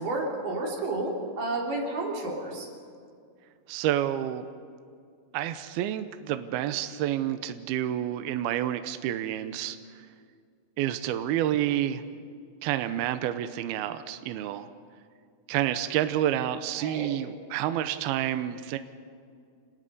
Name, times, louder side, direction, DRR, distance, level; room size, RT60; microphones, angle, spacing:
voice 1, 0.0-2.7 16.8-17.1, right 2 dB, 55° right, -1 dB, 4.4 m, -31 dB
voice 2, 3.7-4.4 5.3-10.1 10.8-12.0 12.6-14.7 15.5-18.8, right 12 dB, 75° right, 10 dB, 2.5 m, -29 dB
28.0 x 20.0 x 5.4 m, 2.2 s
omnidirectional pair, 4.8 m